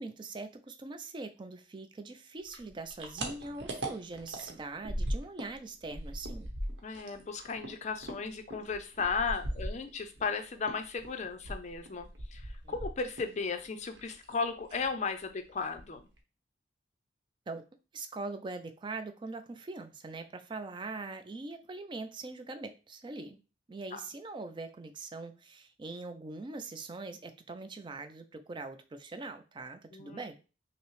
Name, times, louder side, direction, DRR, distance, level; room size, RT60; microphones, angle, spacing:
voice 1, 0.0-6.5 12.6-12.7 17.5-17.6 17.9-23.4 23.7-30.4, right 3 dB, 25° right, 8 dB, 0.3 m, -42 dB
sound 1, 2.5-5.6 5.8-10.3 10.6-13.4 13.6-14.3 14.6-14.9 15.2-15.3 15.6-16.2, right 1 dB, 75° right, 0.9 m, -39 dB
voice 2, 6.8-16.0 23.9-24.0 29.9-30.2, left 5 dB, 40° left, 8 dB, 0.4 m, -35 dB
5.5 x 2.0 x 3.1 m, 0.33 s
head